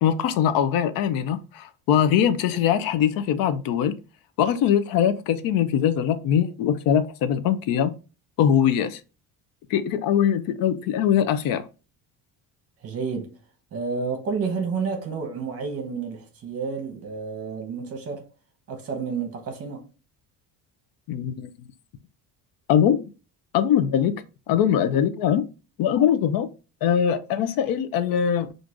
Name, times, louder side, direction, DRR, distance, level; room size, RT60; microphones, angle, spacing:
voice 1, 0.0-4.0 4.4-7.9 8.4-9.0 9.7-11.6 21.1-21.5 22.7-23.1 23.5-24.1 24.5-25.5 25.8-26.5 26.8-28.5, left 9 dB, 60° left, 0.5 m, -22 dB
voice 2, 12.8-13.4 13.7-18.3 18.7-19.8, right 5 dB, 35° right, 0.9 m, -30 dB
5.9 x 2.5 x 2.4 m
cardioid pair, 165°, 40 cm